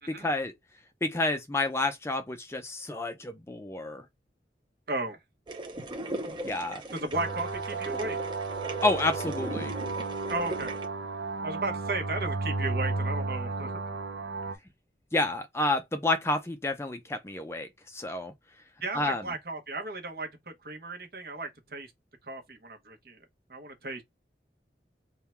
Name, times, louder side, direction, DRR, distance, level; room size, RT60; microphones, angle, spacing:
voice 1, 0.1-0.5 1.0-4.0 6.4-6.8 8.8-9.7 15.1-18.3 18.9-19.2, left 2 dB, 15° left, 0.4 m, -29 dB
voice 2, 4.9-5.2 6.9-8.2 10.3-10.8 11.4-13.7 18.8-20.3 20.6-21.9 22.3-23.2 23.5-24.0, right 2 dB, 55° right, 0.9 m, -35 dB
sound 1, 5.5-10.9, right 1 dB, 25° right, 0.6 m, -39 dB
sound 2, 7.1-14.6, right 3 dB, 75° right, 0.6 m, -33 dB
3.6 x 2.2 x 4.3 m
head